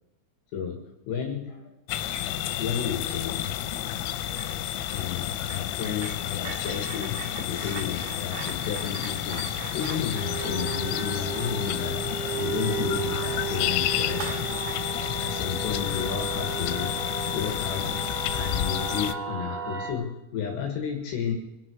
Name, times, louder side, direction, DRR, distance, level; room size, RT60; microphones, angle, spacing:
voice 1, 0.5-1.7 2.6-3.6 4.9-14.5 15.2-16.9 17.3-21.3, left 8 dB, 65° left, 3 dB, 3.6 m, -32 dB
sound 1, 1.9-19.2, left 12 dB, 90° left, 3.5 m, -30 dB
sound 2, 4.3-4.6 4.9-13.1 13.4-13.6 14.1-14.9, right 8 dB, 85° right, 4.1 m, -42 dB
sound 3, 10.1-19.9, right 6 dB, 25° right, 5.1 m, -34 dB
25.5 x 11.5 x 4.7 m, 0.98 s
omnidirectional pair, 6.0 m